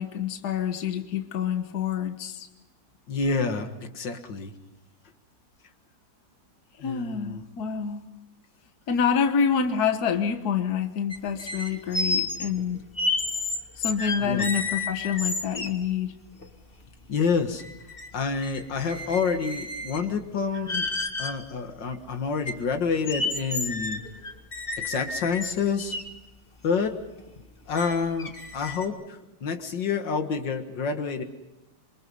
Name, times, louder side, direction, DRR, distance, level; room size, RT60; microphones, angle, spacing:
voice 1, 0.0-2.5 6.8-8.0 8.9-12.9 13.8-16.2, left 7 dB, 60° left, 7 dB, 1.7 m, -27 dB
voice 2, 3.1-4.5 6.8-7.4 14.2-14.5 17.1-17.6 18.1-20.9 21.2-24.0 24.8-26.0 26.6-27.0 27.7-31.2, left 5 dB, 85° left, 7 dB, 2.3 m, -28 dB
sound 1, 11.1-15.9 16.4-16.5 16.8-18.1 18.4-20.1 20.5-21.4 21.9-22.0 22.5-26.1 26.7-26.8 27.3-27.4 27.8-28.9, left 3 dB, 30° left, 1.8 m, -31 dB
27.5 x 24.5 x 5.5 m, 0.96 s
omnidirectional pair, 1.9 m